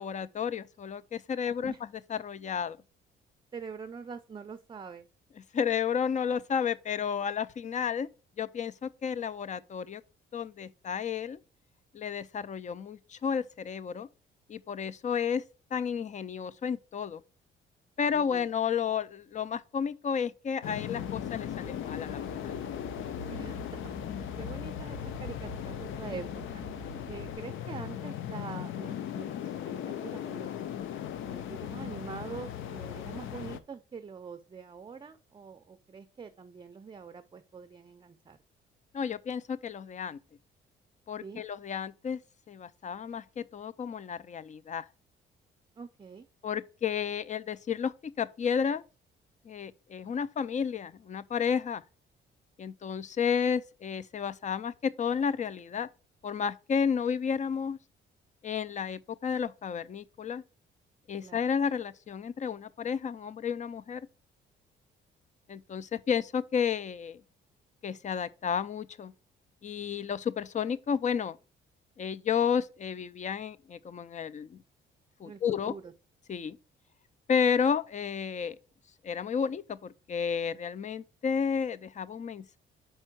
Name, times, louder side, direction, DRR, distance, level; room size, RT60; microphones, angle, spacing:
voice 1, 0.0-1.7 2.1-2.8 5.5-8.1 8.4-10.0 10.3-11.4 11.9-14.1 14.5-15.4 15.7-17.2 18.0-22.5 38.9-40.2 41.1-42.2 42.5-44.8 46.4-48.8 49.5-51.8 52.6-55.9 56.2-57.8 58.4-60.4 61.1-64.0 65.5-67.2 67.8-69.1 69.6-71.4 72.0-74.6 75.2-75.7 76.3-76.6 77.3-78.6 79.0-82.6, left 7 dB, 40° left, 0.5 m, -32 dB
voice 2, 3.5-5.1 18.1-18.5 23.3-26.6 27.1-30.6 31.2-38.4 41.2-41.4 45.8-46.3 61.2-61.4 75.2-75.9, right 5 dB, 25° right, 0.5 m, -44 dB
sound 1, 20.6-33.6, left 10 dB, 80° left, 0.6 m, -38 dB
Aircraft, 20.6-27.3, equal, 65° left, 1.6 m, -46 dB
5.4 x 4.5 x 6.1 m
cardioid pair, 90°, 20 cm